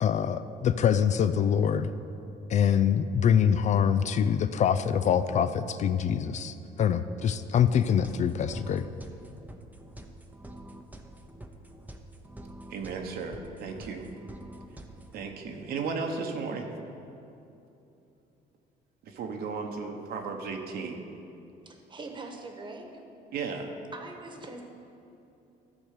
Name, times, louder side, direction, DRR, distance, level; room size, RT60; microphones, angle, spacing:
voice 1, 0.0-1.9 2.5-8.8, left 8 dB, 45° left, 12 dB, 0.4 m, -25 dB
sound 1, 7.6-15.2, right 1 dB, 10° right, 0.7 m, -47 dB
voice 2, 12.7-14.1 15.1-16.7 19.0-21.0 23.3-23.7, right 4 dB, 65° right, 3 dB, 1.1 m, -35 dB
voice 3, 21.6-23.0 23.9-24.6, right 3 dB, 30° right, 4 dB, 1.2 m, -42 dB
13.5 x 4.5 x 6.6 m, 2.8 s
cardioid pair, 110°, 17 cm